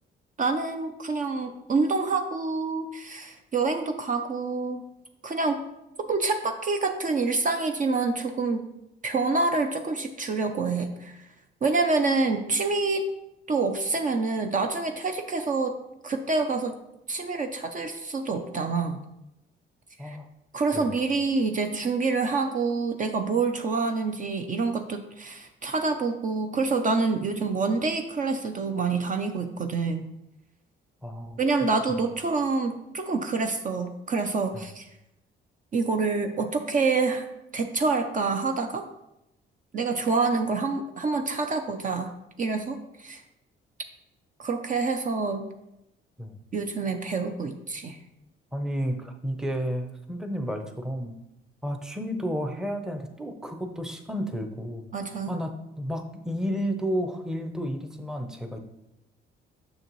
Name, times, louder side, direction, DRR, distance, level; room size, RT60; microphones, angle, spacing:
voice 1, 0.4-4.8 5.2-5.6 6.0-8.6 9.0-11.3 11.6-13.1 13.5-15.7 16.0-16.8 17.1-19.0 20.0-20.2 20.5-30.0 31.4-34.9 35.7-37.3 37.5-38.8 39.7-42.1 42.4-43.2 44.4-45.5 46.5-48.0 54.9-55.4, right 4 dB, 40° right, 5 dB, 0.6 m, -27 dB
voice 2, 31.0-31.4 34.5-34.6 46.2-46.4 48.5-51.2 51.6-54.9 55.3-58.6, equal, 5° right, 5 dB, 0.7 m, -32 dB
6.5 x 6.4 x 3.1 m, 0.87 s
cardioid pair, 90°, 20 cm